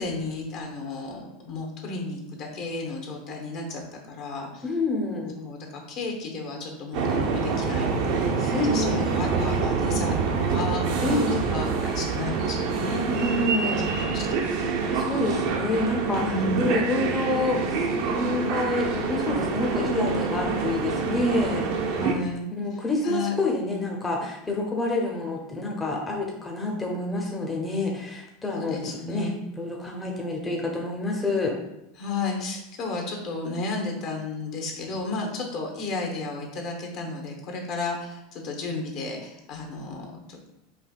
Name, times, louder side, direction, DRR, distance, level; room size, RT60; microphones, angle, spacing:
voice 1, 0.0-4.6 5.4-13.1 14.1-14.4 16.2-16.7 22.0-22.5 23.0-23.3 28.6-29.4 32.0-40.4, left 3 dB, 55° left, 1 dB, 1.0 m, -33 dB
voice 2, 4.6-5.3 8.5-9.1 11.0-11.6 13.1-14.0 14.9-16.2 16.5-21.7 22.5-31.5, left 2 dB, 15° left, -1 dB, 0.7 m, -28 dB
sound 1, 6.9-22.1, right 5 dB, 60° right, 0.5 m, -26 dB
4.9 x 2.7 x 2.3 m, 0.84 s
hypercardioid pair, 90°, 0 cm